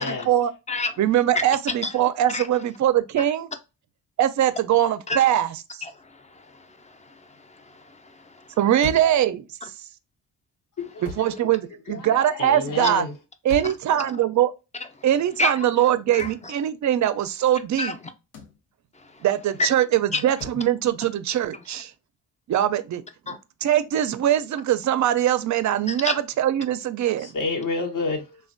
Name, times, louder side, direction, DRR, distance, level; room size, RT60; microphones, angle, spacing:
voice 1, 0.0-0.5 1.0-3.5 4.2-5.6 8.6-9.5 11.0-13.0 13.4-14.5 15.0-18.0 19.2-21.9 22.5-23.0 23.6-27.3, right 11 dB, 50° right, 0.4 m, -22 dB
voice 2, 5.8-6.5 6.8-7.0 7.6-8.4 15.4-15.7 16.1-16.5 17.8-18.0 19.6-19.7 20.1-20.2 23.3-23.4 25.9-26.2, left 2 dB, 20° left, 0.5 m, -28 dB
sound 1, 8.8-9.2 11.0-11.4 13.5-13.9 16.2-16.4 18.3-18.6 20.4-20.7, left 1 dB, 85° left, 0.7 m, -37 dB
voice 3, 10.8-11.4 11.9-13.1 27.2-28.4, left 3 dB, 55° left, 0.8 m, -30 dB
3.2 x 2.2 x 2.5 m
cardioid pair, 80°, 39 cm